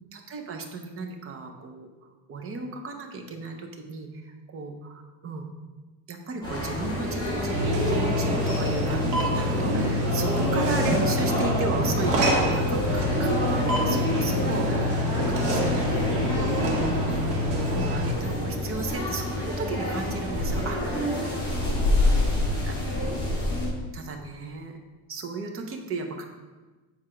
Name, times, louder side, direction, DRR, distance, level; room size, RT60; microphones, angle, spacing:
voice 1, 0.1-1.9 2.3-5.5 6.1-13.3 13.6-17.3 17.5-22.8 23.1-23.7 23.9-24.8 25.1-26.2, right 3 dB, 30° right, 4 dB, 0.7 m, -35 dB
sound 1, 6.4-23.7, left 1 dB, 10° left, 2.0 m, -28 dB
sound 2, 7.5-18.1, equal, 60° right, 1.8 m, -26 dB
7.7 x 4.3 x 4.9 m, 1.2 s
cardioid pair, 175°, 47 cm